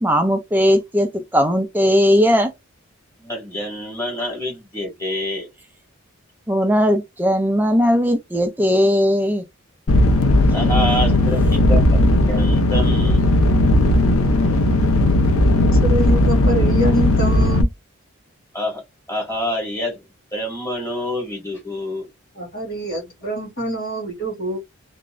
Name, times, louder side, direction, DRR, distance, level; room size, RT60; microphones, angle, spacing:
voice 1, 0.0-2.5 6.5-9.4, equal, 10° right, 0.5 m, -18 dB
voice 2, 3.2-5.5 10.5-13.2 18.5-18.8 19.1-20.1 20.3-22.1, equal, 15° left, 2.1 m, -27 dB
sound 1, 9.9-17.6, left 1 dB, 85° left, 0.7 m, -16 dB
voice 3, 15.8-17.7 22.3-24.6, equal, 55° left, 2.3 m, -25 dB
3.5 x 2.6 x 3.2 m
head